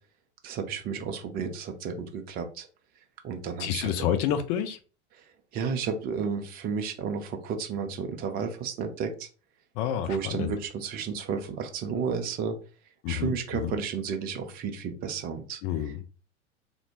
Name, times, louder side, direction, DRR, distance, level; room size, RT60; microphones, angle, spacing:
voice 1, 0.4-2.7 3.2-4.1 5.5-9.3 10.1-12.6 13.1-15.6, right 6 dB, 25° right, 5 dB, 0.5 m, -32 dB
voice 2, 3.6-4.8 9.8-10.5 13.0-13.7 15.6-16.0, left 10 dB, 35° left, 9 dB, 0.4 m, -29 dB
2.5 x 2.1 x 2.8 m, 0.36 s
figure-of-eight pair, 90°, 35 cm